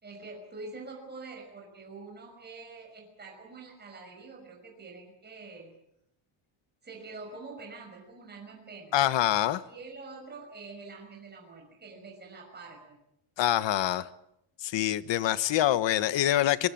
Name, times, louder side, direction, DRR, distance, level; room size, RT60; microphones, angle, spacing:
voice 1, 0.0-5.7 6.8-8.9 9.7-13.0, right 3 dB, 20° right, 0 dB, 6.0 m, -45 dB
voice 2, 8.9-9.6 13.4-14.1 14.6-16.7, left 12 dB, 60° left, 14 dB, 1.2 m, -25 dB
23.5 x 22.0 x 7.6 m, 0.80 s
cardioid pair, 165°, 50 cm